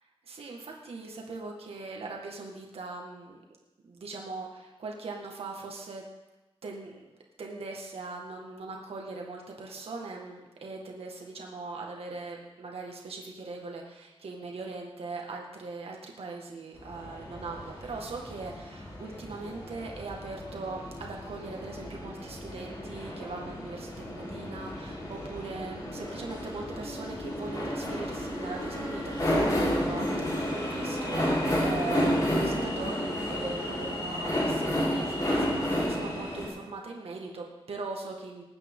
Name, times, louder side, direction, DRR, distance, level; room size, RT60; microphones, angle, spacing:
voice 1, 0.2-3.4 3.8-6.0 6.6-7.0 7.4-38.4, right 3 dB, 70° right, 0 dB, 1.8 m, -40 dB
sound 1, 16.7-36.5, equal, 35° left, 4.1 m, -31 dB
20.0 x 9.0 x 3.8 m, 1.0 s
wide cardioid pair, 145°, 10 cm